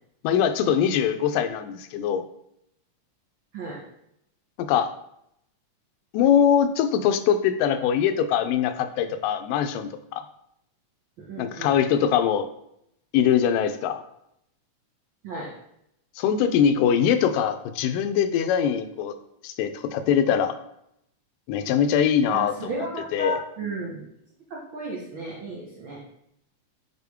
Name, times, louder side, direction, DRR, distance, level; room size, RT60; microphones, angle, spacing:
voice 1, 0.2-2.2 4.6-4.9 6.1-10.3 11.4-12.5 13.1-14.0 16.2-19.2 19.4-20.6 21.5-23.4, left 8 dB, 85° left, 9 dB, 2.2 m, -22 dB
voice 2, 11.3-11.7 15.2-15.5 22.3-24.0 24.5-26.0, right 1 dB, 85° right, -3 dB, 1.1 m, -33 dB
6.6 x 4.4 x 3.5 m, 0.76 s
omnidirectional pair, 3.8 m